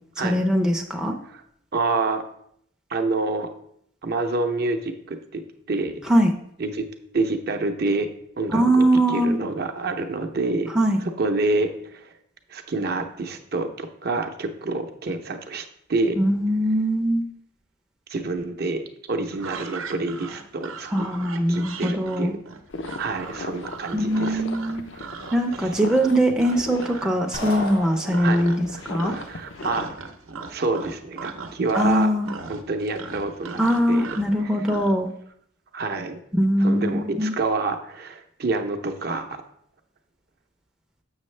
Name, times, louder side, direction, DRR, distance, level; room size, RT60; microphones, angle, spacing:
voice 1, 0.2-1.2 6.1-6.3 8.5-9.4 10.7-11.0 16.2-17.2 20.9-22.3 23.9-24.8 25.3-29.2 31.7-32.3 33.6-35.1 36.3-37.3, equal, 5° right, 1 dB, 0.5 m, -21 dB
voice 2, 1.7-2.2 2.9-3.5 4.0-5.4 5.7-5.9 6.6-6.8 7.1-8.1 8.4-8.8 9.1-10.7 11.0-12.1 12.5-15.6 15.9-16.2 18.1-18.8 19.1-20.9 21.5-22.3 23.0-24.4 24.9-25.1 28.2-28.4 28.7-29.9 30.5-32.1 32.5-33.6 33.9-34.1 35.7-36.2 36.6-39.3, right 3 dB, 50° right, 5 dB, 0.6 m, -27 dB
sound 1, 19.3-27.1 27.4-27.8 28.1-28.7 29.0-35.0, right 4 dB, 90° right, 0.7 m, -38 dB
sound 2, 22.7-29.8, left 3 dB, 65° left, 0.6 m, -37 dB
sound 3, 27.3-28.6, equal, 90° left, 2.6 m, -34 dB
7.0 x 6.4 x 3.2 m, 0.69 s
head